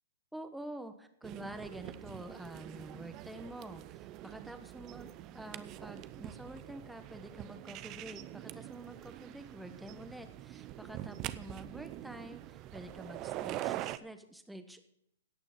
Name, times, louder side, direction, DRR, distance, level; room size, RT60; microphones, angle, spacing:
voice 1, 0.3-5.1 5.3-14.9, right 1 dB, 5° right, 8 dB, 1.1 m, -48 dB
sound 1, 1.2-14.0, right 14 dB, 30° right, 0.6 m, -44 dB
17.0 x 6.1 x 5.8 m, 0.74 s
hypercardioid pair, 130°, 0 cm